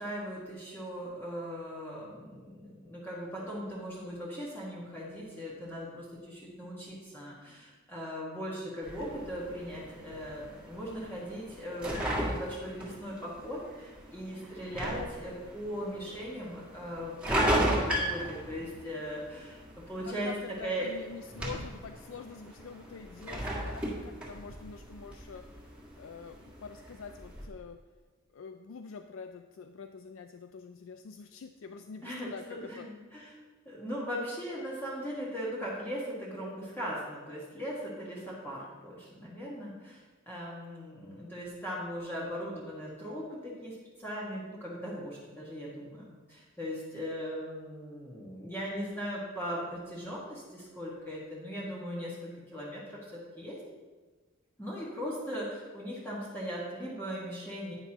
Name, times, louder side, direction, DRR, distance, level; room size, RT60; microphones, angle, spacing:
voice 1, 0.0-19.6 19.9-20.3 20.6-20.9 32.0-33.4 33.6-53.6 54.6-57.7, equal, 10° left, -7 dB, 1.6 m, -39 dB
sound 1, 8.8-27.4, right 1 dB, 5° right, 2.0 m, -36 dB
voice 2, 20.1-25.7 26.0-27.8 28.3-32.9, left 5 dB, 75° left, 7 dB, 0.4 m, -46 dB
10.5 x 9.4 x 3.0 m, 1.3 s
head